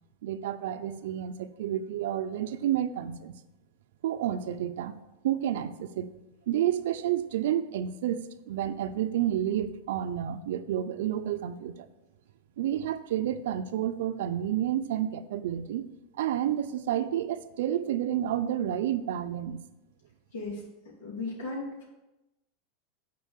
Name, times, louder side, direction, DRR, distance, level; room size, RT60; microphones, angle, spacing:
voice 1, 0.2-3.4 4.0-5.0 5.2-6.1 6.5-11.9 12.6-15.9 16.2-19.7, right 11 dB, 80° right, 11 dB, 0.5 m, -30 dB
voice 2, 21.0-21.8, left 3 dB, 85° left, -5 dB, 3.0 m, -36 dB
6.6 x 4.5 x 6.5 m, 0.98 s
supercardioid pair, 135°, 0 cm